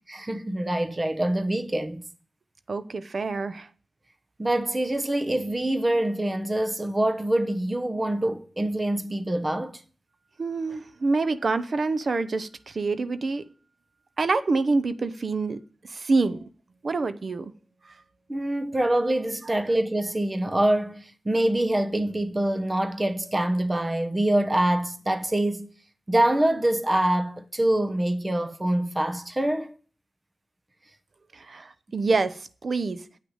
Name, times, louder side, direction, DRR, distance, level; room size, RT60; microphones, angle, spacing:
voice 1, 0.1-2.0 4.4-9.8 18.3-25.7 26.1-29.7, right 1 dB, 20° right, 1.0 m, -25 dB
voice 2, 2.7-3.7 10.4-13.4 14.2-15.6 15.9-16.4 16.8-17.5 31.3-33.0, right 3 dB, 60° right, 0.7 m, -26 dB
9.2 x 6.2 x 8.1 m
wide cardioid pair, 105°, 0 cm